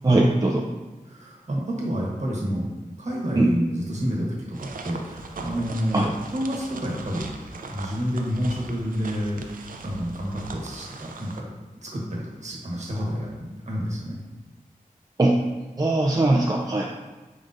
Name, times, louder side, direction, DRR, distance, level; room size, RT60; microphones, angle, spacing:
voice 1, 0.0-0.6 3.4-3.5 5.9-6.1 15.2-15.4 15.8-16.8, right 2 dB, 25° right, -2 dB, 0.5 m, -20 dB
voice 2, 1.0-2.7 3.0-7.3 7.7-9.4 9.8-11.5 11.8-14.2, equal, 55° right, -3 dB, 1.2 m, -29 dB
sound 1, 4.5-11.4, right 3 dB, 80° right, 0.4 m, -40 dB
4.9 x 3.8 x 2.6 m, 1.2 s
wide cardioid pair, 55°, 14 cm